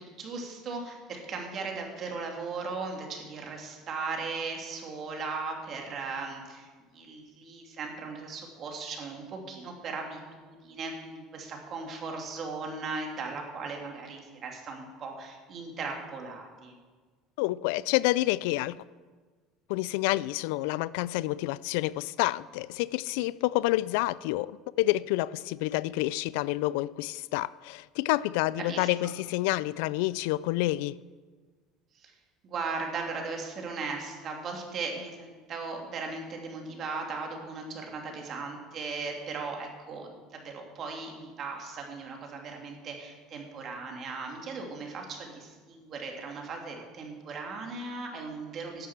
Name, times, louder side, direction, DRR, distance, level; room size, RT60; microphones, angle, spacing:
voice 1, 0.0-6.7 6.9-16.7 28.7-28.9 31.9-32.1 32.4-48.9, right 4 dB, 45° right, 2.8 m, -37 dB
voice 2, 17.4-18.8 19.7-31.0, left 18 dB, 80° left, 0.3 m, -28 dB
11.0 x 7.8 x 7.3 m
supercardioid pair, 105°, 0 cm